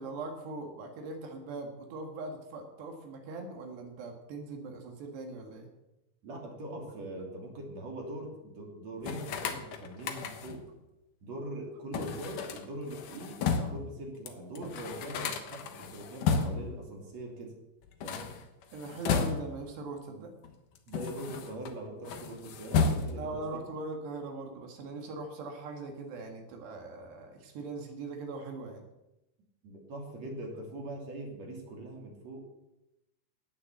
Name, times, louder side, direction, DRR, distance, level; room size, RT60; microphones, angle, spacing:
voice 1, 0.0-5.7 18.7-20.3 23.2-28.9, right 3 dB, 80° right, 2 dB, 4.0 m, -41 dB
voice 2, 6.2-10.7 11.2-17.5 18.0-18.4 20.1-20.2 20.9-23.6 29.6-32.5, right 1 dB, 45° right, 0 dB, 3.5 m, -42 dB
sound 1, 9.0-10.7 11.9-13.9 14.3-14.4 14.6-16.8 17.9-19.7 20.4-21.7 22.0-23.4, left 5 dB, 65° left, 2.3 m, -33 dB
18.5 x 7.1 x 7.2 m, 0.94 s
omnidirectional pair, 4.8 m